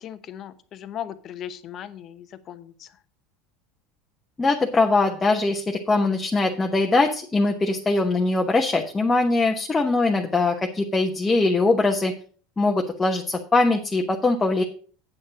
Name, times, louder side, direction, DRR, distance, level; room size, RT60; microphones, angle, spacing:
voice 1, 0.0-2.9, left 10 dB, 45° left, 12 dB, 0.9 m, -37 dB
voice 2, 4.4-12.1 12.6-14.6, left 3 dB, 15° left, 2 dB, 1.0 m, -21 dB
8.6 x 6.6 x 5.1 m, 0.42 s
supercardioid pair, 115°, 0 cm